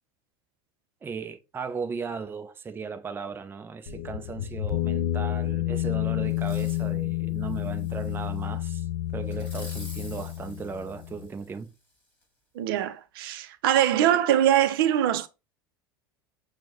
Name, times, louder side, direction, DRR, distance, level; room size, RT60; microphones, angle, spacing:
voice 1, 1.0-8.9 9.1-11.7, right 5 dB, 20° right, 0.4 m, -36 dB
sound 1, 3.9-11.3, left 15 dB, 80° left, 0.4 m, -30 dB
Fireworks, 6.3-6.9 7.4-8.5 9.3-11.7 12.2-12.3, left 1 dB, 15° left, 1.5 m, -49 dB
voice 2, 12.6-15.3, right 11 dB, 75° right, 0.5 m, -23 dB
6.2 x 2.1 x 2.8 m
hypercardioid pair, 85°, 12 cm